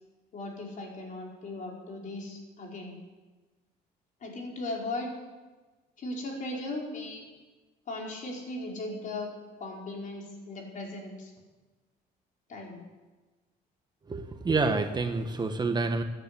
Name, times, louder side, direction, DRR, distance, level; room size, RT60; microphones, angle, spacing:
voice 1, 0.3-3.0 4.2-5.1 6.0-7.2 7.9-9.3 9.6-11.3 12.5-12.8, left 2 dB, 50° left, -1 dB, 4.7 m, -37 dB
voice 2, 14.1-16.0, right 3 dB, 25° right, 6 dB, 1.3 m, -28 dB
14.5 x 10.5 x 8.4 m, 1.2 s
cardioid pair, 110°, 17 cm